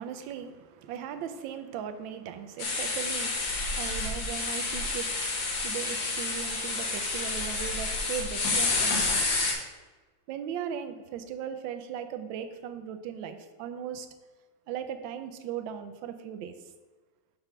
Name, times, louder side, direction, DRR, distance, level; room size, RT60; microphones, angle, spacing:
voice 1, 0.0-9.4 10.3-14.1 14.7-16.5, right 8 dB, 80° right, 9 dB, 1.3 m, -38 dB
sound 1, 2.6-9.5, left 3 dB, 75° left, 1.8 m, -29 dB
5.5 x 3.5 x 5.8 m, 1.3 s
omnidirectional pair, 2.1 m